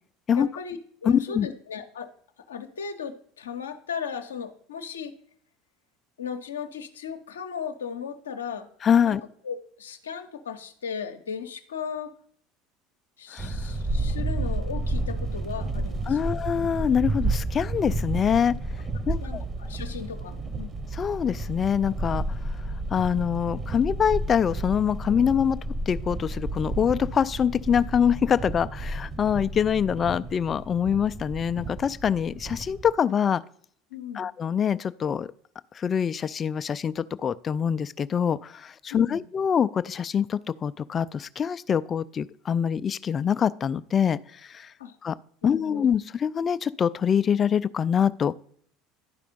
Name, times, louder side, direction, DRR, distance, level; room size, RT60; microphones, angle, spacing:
voice 1, 0.4-2.1 2.5-5.1 6.2-8.7 9.0-9.2 9.4-12.1 13.2-16.3 19.2-20.7 33.9-34.3 38.9-39.3 44.8-45.0 45.4-45.8, left 7 dB, 75° left, 7 dB, 0.7 m, -36 dB
voice 2, 1.1-1.5 8.8-9.2 13.3-13.6 16.1-18.5 19.1-19.4 20.9-22.2 22.9-25.6 25.9-33.4 34.1-35.3 35.7-44.7 45.0-45.1 45.4-48.4, left 8 dB, 30° left, 15 dB, 0.3 m, -24 dB
sound 1, 13.4-32.9, right 2 dB, 25° right, 1.0 m, -31 dB
11.5 x 5.0 x 5.1 m, 0.62 s
figure-of-eight pair, 70°, 0 cm